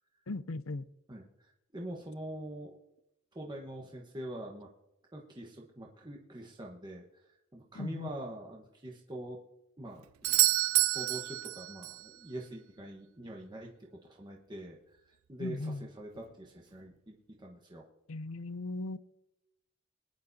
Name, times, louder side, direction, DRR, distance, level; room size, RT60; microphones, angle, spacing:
voice 1, 0.3-0.8 7.7-8.1 15.4-15.9 18.1-19.0, left 2 dB, 80° left, 0.6 m, -37 dB
voice 2, 1.1-2.8 3.3-4.7 5.1-9.4 9.8-10.1 10.9-17.8, right 1 dB, 20° right, 1.2 m, -44 dB
Doorbell, 10.2-12.1 16.2-16.3, right 18 dB, 85° right, 0.3 m, -28 dB
22.5 x 10.5 x 2.7 m
head